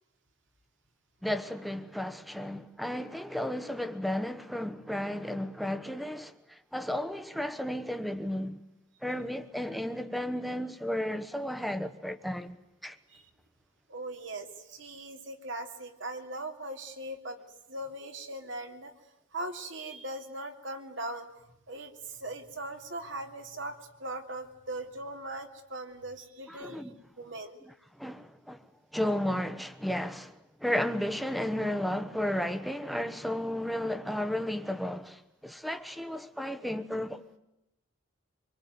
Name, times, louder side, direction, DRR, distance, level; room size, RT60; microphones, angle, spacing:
voice 1, 1.2-8.6 9.0-12.6 12.8-13.0 26.5-27.0 28.0-28.6 28.9-37.4, left 1 dB, ahead, 1.1 m, -33 dB
voice 2, 13.9-17.4 17.7-18.9 19.3-21.3 21.7-26.8 27.2-27.6, right 1 dB, 60° right, 2.9 m, -40 dB
26.0 x 23.0 x 9.5 m
head